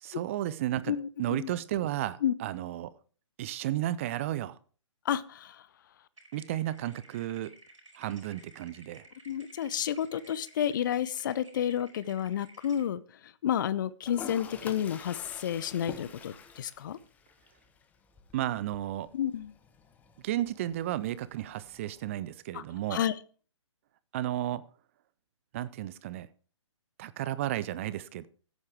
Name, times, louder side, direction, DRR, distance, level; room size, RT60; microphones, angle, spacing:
voice 1, 0.0-0.9 1.2-2.9 3.4-4.6 6.3-7.5 8.0-9.1 18.3-19.1 20.2-23.0 24.1-24.6 25.5-26.3 27.0-28.3, right 13 dB, 25° right, 17 dB, 0.5 m, -33 dB
voice 2, 0.9-1.5 2.2-2.3 5.0-5.7 9.3-17.0 19.1-19.5 22.5-22.6 22.9-23.2, left 10 dB, 40° left, 18 dB, 0.6 m, -31 dB
sound 1, 6.2-12.9, right 2 dB, 80° right, 5.0 m, -56 dB
Toilet flush, 14.0-22.0, left 6 dB, 10° left, 0.8 m, -48 dB
14.5 x 9.6 x 3.4 m, 0.40 s
figure-of-eight pair, 130°, 16 cm